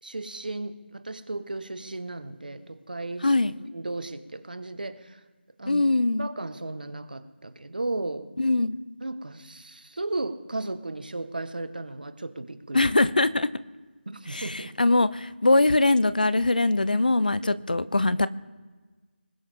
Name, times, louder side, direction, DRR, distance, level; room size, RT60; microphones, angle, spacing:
voice 1, 0.0-3.3 3.7-5.2 5.6-5.8 6.2-8.3 9.0-12.8 14.1-14.7 17.4-17.6, right 2 dB, 50° right, 10 dB, 1.4 m, -35 dB
voice 2, 3.2-3.5 5.7-6.3 8.4-8.8 12.7-13.5 14.3-18.3, left 2 dB, 50° left, 16 dB, 0.6 m, -22 dB
20.5 x 19.5 x 3.7 m, 1.4 s
figure-of-eight pair, 175°, 6 cm